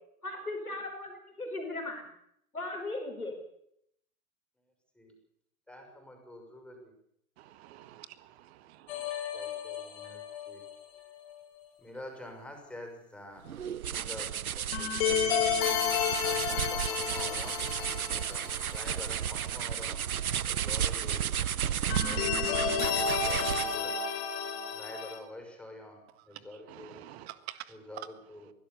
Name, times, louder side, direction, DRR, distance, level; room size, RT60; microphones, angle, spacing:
voice 1, 0.2-2.1 2.5-3.4, left 2 dB, 85° left, 4.9 m, -37 dB
voice 2, 5.7-6.9 9.3-10.6 11.8-13.5 13.9-15.4 16.2-18.4 18.7-20.0 20.5-21.2 21.8-22.7 23.1-24.0 24.7-26.0 26.2-27.0 27.7-28.5, left 1 dB, 5° left, 6.0 m, -47 dB
voice 3, 7.4-9.1 26.7-28.1, right 14 dB, 45° right, 1.8 m, -47 dB
sound 1, 8.9-10.7 14.7-19.1 19.4-19.5 21.9-25.2, left 7 dB, 50° left, 4.0 m, -31 dB
sound 2, 13.4-23.9, right 9 dB, 80° right, 0.7 m, -33 dB
23.0 x 16.5 x 6.9 m
figure-of-eight pair, 95°, 43 cm